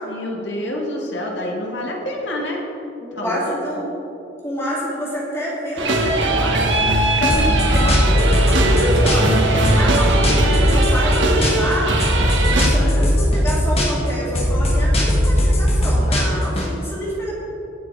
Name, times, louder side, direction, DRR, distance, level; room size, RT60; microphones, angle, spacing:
voice 1, 0.0-2.6 3.1-3.6 7.3-7.8 9.8-10.0, left 1 dB, 70° left, -1 dB, 2.2 m, -28 dB
voice 2, 3.0-3.9 4.4-6.7 7.2-9.4 9.7-12.0 12.5-17.3, equal, 15° left, -6 dB, 2.3 m, -26 dB
sound 1, 5.8-12.7, right 1 dB, 75° right, 1.7 m, -19 dB
sound 2, 7.3-9.4 9.6-11.7 12.0-14.1 14.3-16.7, equal, 30° left, 1.8 m, -18 dB
18.5 x 7.3 x 4.9 m, 2.9 s
head